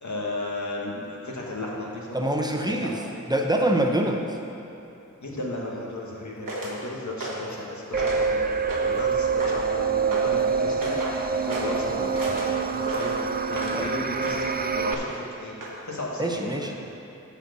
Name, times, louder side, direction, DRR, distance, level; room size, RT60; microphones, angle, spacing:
voice 1, 0.0-2.2 2.7-2.9 5.2-10.9 11.4-13.2 13.5-16.7, left 1 dB, 60° left, -3 dB, 1.5 m, -34 dB
voice 2, 2.1-3.0 3.3-4.4 13.8-13.9 16.2-16.8, right 1 dB, 15° right, 2 dB, 0.8 m, -25 dB
sound 1, 6.5-6.8 7.2-7.5 7.9-8.3 8.7-9.0 9.4-9.7 10.1-10.3 10.8-11.2 11.5-11.8 12.1-13.8 14.2-14.5 14.9-15.3 15.6-15.8, right 1 dB, 85° right, 1.2 m, -33 dB
sound 2, 7.9-14.9, right 5 dB, 30° right, 0.4 m, -26 dB
9.5 x 4.4 x 6.7 m, 2.9 s
wide cardioid pair, 55°, 32 cm